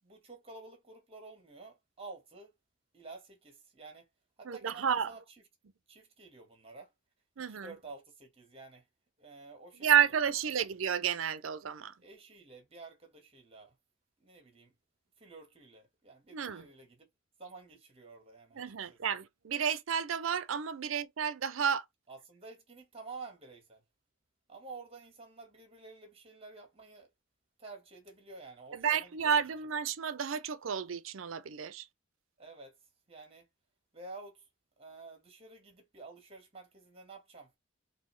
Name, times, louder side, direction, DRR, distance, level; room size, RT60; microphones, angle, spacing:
voice 1, 0.0-2.5 2.9-4.1 4.4-5.2 5.9-6.9 7.4-8.8 9.2-9.9 12.0-13.8 14.2-14.7 15.2-17.1 17.4-19.0 22.1-23.8 24.5-27.1 27.6-29.4 32.4-32.8 33.1-33.5 33.9-34.5 34.8-37.5, right 3 dB, 30° right, 1.6 m, -50 dB
voice 2, 4.4-5.1 7.4-7.7 9.8-11.9 16.3-16.6 18.6-21.8 28.7-31.9, right 8 dB, 75° right, 0.5 m, -31 dB
4.2 x 2.7 x 3.1 m
head